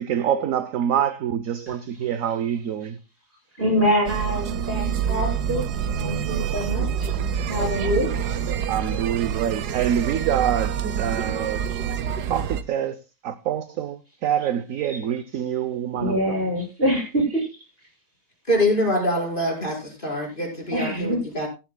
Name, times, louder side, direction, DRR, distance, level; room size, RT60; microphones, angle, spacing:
voice 1, 0.0-3.0 8.7-11.6 12.3-13.0 13.2-16.2, right 9 dB, 60° right, 1.1 m, -26 dB
voice 2, 3.6-5.7 5.9-7.1 7.5-8.2 14.9-15.0 15.8-17.5 20.7-21.2, equal, 35° right, 7.2 m, -25 dB
sound 1, 4.1-12.6, right 8 dB, 80° right, 1.4 m, -27 dB
voice 3, 18.5-21.5, left 1 dB, 30° left, 5.4 m, -24 dB
17.5 x 13.0 x 2.2 m
omnidirectional pair, 1.7 m